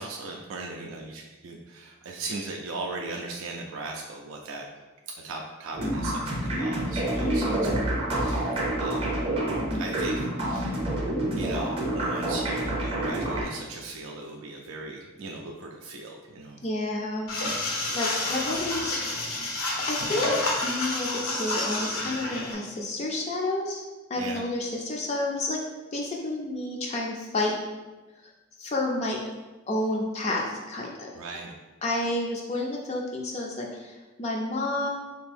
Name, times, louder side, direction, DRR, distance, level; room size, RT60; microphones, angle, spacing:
voice 1, 0.0-4.7 5.2-7.9 8.2-9.2 9.8-10.8 11.3-16.6 24.2-24.4 31.1-31.5, right 3 dB, 75° right, 0 dB, 0.3 m, -38 dB
sound 1, 5.7-13.4, right 1 dB, 25° right, 0.6 m, -28 dB
voice 2, 7.3-7.9 16.6-17.3 17.9-19.0 19.9-23.8 24.1-25.6 25.9-27.5 28.6-29.2 29.7-31.1 31.8-34.9, left 2 dB, 30° left, -1 dB, 0.4 m, -30 dB
sound 2, 17.3-22.5, left 2 dB, 85° left, 0.8 m, -29 dB
3.4 x 2.6 x 3.3 m, 1.2 s
head